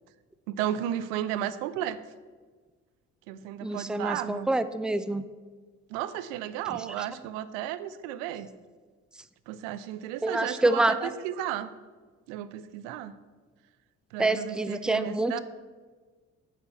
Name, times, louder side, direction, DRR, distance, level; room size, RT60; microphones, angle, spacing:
voice 1, 0.5-2.0 3.3-4.5 5.9-8.5 9.5-11.0 11.2-11.7 12.3-13.1 14.1-15.4, right 11 dB, 80° right, 15 dB, 0.6 m, -34 dB
voice 2, 3.6-5.2 7.0-7.1 10.2-11.1 14.2-15.4, right 2 dB, ahead, 13 dB, 0.6 m, -27 dB
9.5 x 6.4 x 7.9 m, 1.4 s
hypercardioid pair, 50°, 38 cm